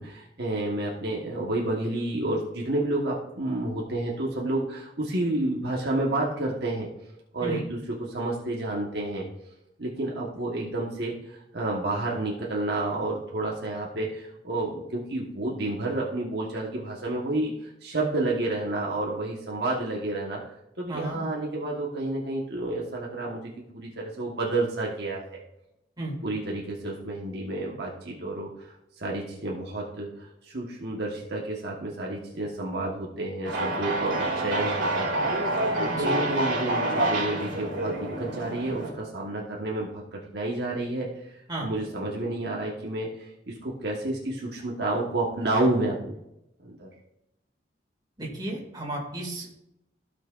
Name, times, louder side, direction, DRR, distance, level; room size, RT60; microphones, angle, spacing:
voice 1, 0.0-6.9 7.3-9.3 9.8-20.4 20.8-23.4 23.7-25.4 26.2-35.5 35.8-41.3 41.6-46.2 46.6-46.9, right 2 dB, 60° right, -3 dB, 1.4 m, -30 dB
voice 2, 20.9-21.2 26.0-26.2 35.9-36.2 41.5-41.7 48.2-49.6, right 1 dB, 20° right, -3 dB, 2.4 m, -33 dB
sound 1, 33.4-38.9, right 1 dB, 80° right, 2.9 m, -27 dB
15.5 x 6.0 x 2.5 m, 0.84 s
head